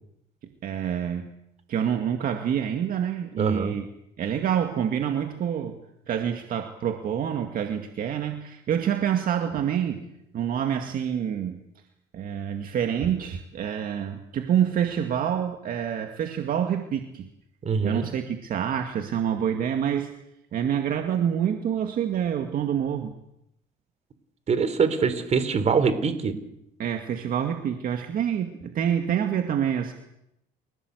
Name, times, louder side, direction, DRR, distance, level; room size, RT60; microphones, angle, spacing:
voice 1, 0.6-1.3 1.7-3.9 4.2-5.8 6.1-10.0 10.3-11.6 12.1-17.3 17.8-20.1 20.5-23.1 26.8-29.9, right 9 dB, 60° right, 5 dB, 2.2 m, -27 dB
voice 2, 3.4-3.8 17.6-18.1 24.5-26.3, right 5 dB, 40° right, 12 dB, 3.4 m, -23 dB
29.5 x 17.0 x 8.1 m, 0.81 s
cardioid pair, 110°, 17 cm